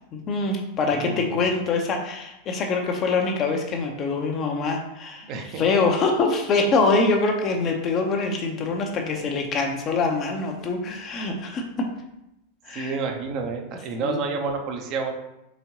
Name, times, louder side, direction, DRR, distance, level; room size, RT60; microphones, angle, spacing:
voice 1, 0.1-5.3 5.6-11.9 12.6-13.0 14.0-14.2, left 3 dB, 30° left, 2 dB, 0.6 m, -24 dB
voice 2, 0.9-1.5 5.3-5.6 12.7-15.1, right 4 dB, 40° right, 3 dB, 0.6 m, -29 dB
4.0 x 3.6 x 2.8 m, 0.87 s
figure-of-eight pair, 90°, 0 cm